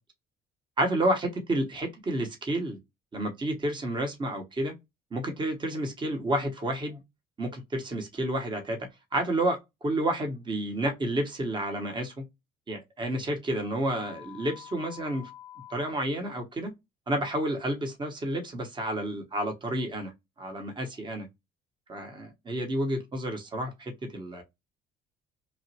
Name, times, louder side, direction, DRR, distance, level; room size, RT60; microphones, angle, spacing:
voice 1, 0.8-2.8 3.1-4.7 5.1-7.0 7.4-12.2 12.7-15.3 15.7-16.7 17.1-20.1 20.4-21.3 21.9-24.4, right 1 dB, 25° right, 1.0 m, -30 dB
sound 1, 13.9-15.9, left 12 dB, 20° left, 0.9 m, -47 dB
3.0 x 2.4 x 2.8 m
cardioid pair, 110°, 17 cm